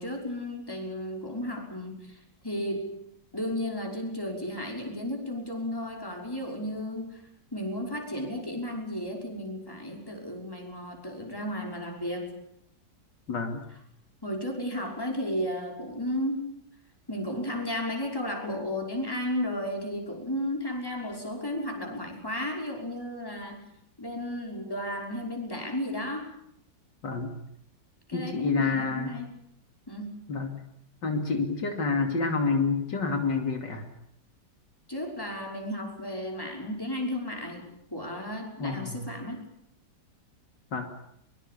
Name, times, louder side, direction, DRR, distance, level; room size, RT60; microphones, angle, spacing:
voice 1, 0.0-2.2 2.4-3.0 3.3-7.2 7.5-12.4 14.2-16.5 17.1-23.7 24.0-26.3 28.1-29.3 29.9-30.3 34.9-39.4, left 1 dB, 10° left, 2 dB, 5.8 m, -33 dB
voice 2, 13.3-13.6 27.0-27.4 28.1-29.2 30.3-30.6 31.0-33.9 38.6-39.1 40.7-40.9, left 4 dB, 75° left, 5 dB, 3.3 m, -28 dB
23.5 x 23.0 x 8.6 m, 0.71 s
omnidirectional pair, 1.9 m